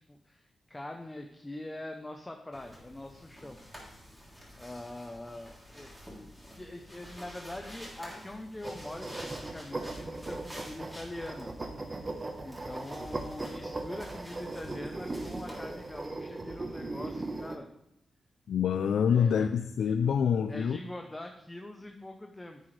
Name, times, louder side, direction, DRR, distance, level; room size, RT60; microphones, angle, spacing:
voice 1, 0.1-3.6 4.5-11.7 12.4-17.7 19.1-19.3 19.9-20.0 20.5-22.6, left 1 dB, 15° left, 4 dB, 0.8 m, -43 dB
sound 1, 2.5-16.1, equal, ahead, 3.2 m, -49 dB
sound 2, 8.6-17.6, right 2 dB, 25° right, 1.1 m, -39 dB
voice 2, 18.5-20.8, left 7 dB, 85° left, 9 dB, 0.4 m, -26 dB
10.5 x 8.1 x 3.3 m, 0.81 s
wide cardioid pair, 110°, 0 cm